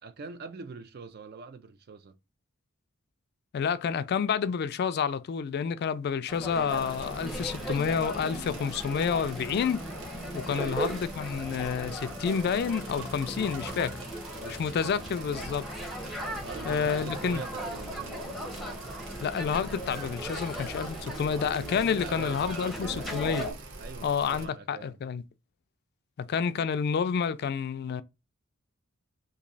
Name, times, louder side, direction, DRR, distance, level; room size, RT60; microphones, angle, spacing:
voice 1, 0.0-2.1 10.5-10.9 14.4-15.0 16.3-18.1 20.3-20.5 21.9-23.2 23.8-25.0, right 4 dB, 50° right, 0.4 m, -43 dB
voice 2, 3.5-9.8 10.3-13.9 14.6-15.7 16.7-17.4 19.2-23.5 24.0-25.2 26.2-28.0, left 6 dB, 50° left, 0.3 m, -29 dB
sound 1, 6.3-23.5, equal, ahead, 0.7 m, -38 dB
sound 2, 6.7-24.5, right 2 dB, 65° right, 0.8 m, -45 dB
3.0 x 2.6 x 3.9 m
head